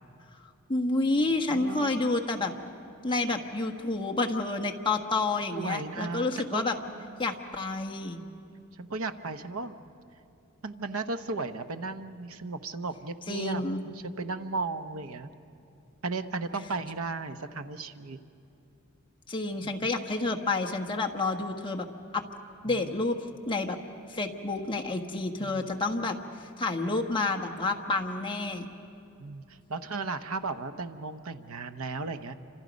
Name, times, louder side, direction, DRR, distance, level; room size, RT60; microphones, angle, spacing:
voice 1, 0.7-2.5 3.0-6.7 7.2-8.2 13.3-13.8 19.3-21.8 22.1-22.2 22.6-23.2 23.5-23.8 24.1-28.7, left 3 dB, 25° left, 2 dB, 1.3 m, -29 dB
voice 2, 1.5-2.0 5.5-6.6 7.0-7.3 8.8-9.8 10.6-15.3 16.0-18.2 19.6-19.8 22.6-22.9 25.4-25.7 29.2-32.3, right 3 dB, 70° right, 9 dB, 0.9 m, -35 dB
28.5 x 26.5 x 5.2 m, 2.6 s
head